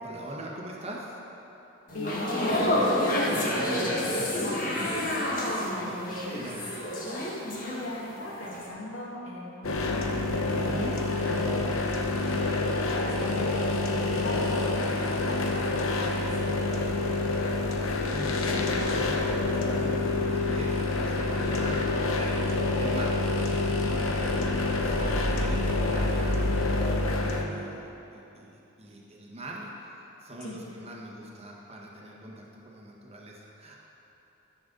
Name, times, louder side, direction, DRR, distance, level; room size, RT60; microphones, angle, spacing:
voice 1, 0.0-1.2 3.3-5.0 5.7-6.0 6.3-6.8 10.5-11.0 12.1-12.5 18.1-22.4 22.8-24.0 24.3-33.8, right 1 dB, 30° right, -3 dB, 1.4 m, -42 dB
voice 2, 1.9-2.9 5.6-6.5 7.4-11.8 12.3-12.4 13.0-16.5 23.8-24.4 25.1-25.4 30.4-30.6, left 1 dB, 70° left, -4 dB, 2.1 m, -39 dB
sound 1, 1.9-8.1 8.4-8.7, left 1 dB, 45° left, 1.6 m, -28 dB
sound 2, 9.6-27.4, left 2 dB, 90° left, 0.9 m, -27 dB
14.0 x 6.9 x 4.0 m, 3.0 s
head